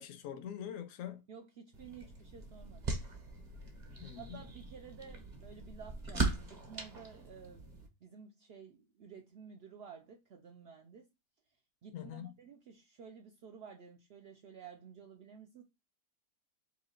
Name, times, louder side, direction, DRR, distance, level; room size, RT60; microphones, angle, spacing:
voice 1, 0.0-1.2 4.0-4.4 11.9-12.3, left 10 dB, 65° left, 0.9 m, -44 dB
voice 2, 1.3-2.9 4.2-7.7 8.0-11.1 11.8-15.6, right 6 dB, 80° right, 0.5 m, -53 dB
sound 1, 1.7-7.9, right 2 dB, 35° right, 0.8 m, -40 dB
3.0 x 2.8 x 4.3 m
omnidirectional pair, 1.6 m